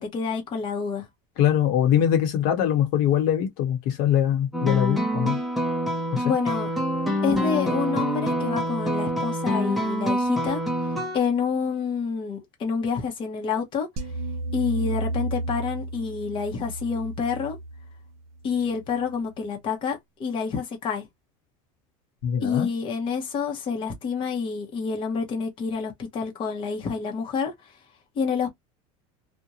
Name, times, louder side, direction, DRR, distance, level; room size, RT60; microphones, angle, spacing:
voice 1, 0.1-1.1 6.2-6.7 7.2-13.9 14.5-17.6 18.4-21.1 22.4-27.5 28.2-28.5, left 5 dB, 30° left, 0.7 m, -28 dB
voice 2, 1.4-5.4 6.1-6.3 22.2-22.7, left 10 dB, 65° left, 0.9 m, -22 dB
sound 1, 4.5-11.2, equal, ahead, 0.6 m, -26 dB
sound 2, 14.0-19.2, right 1 dB, 60° right, 0.7 m, -33 dB
2.5 x 2.1 x 2.8 m
supercardioid pair, 140°, 16 cm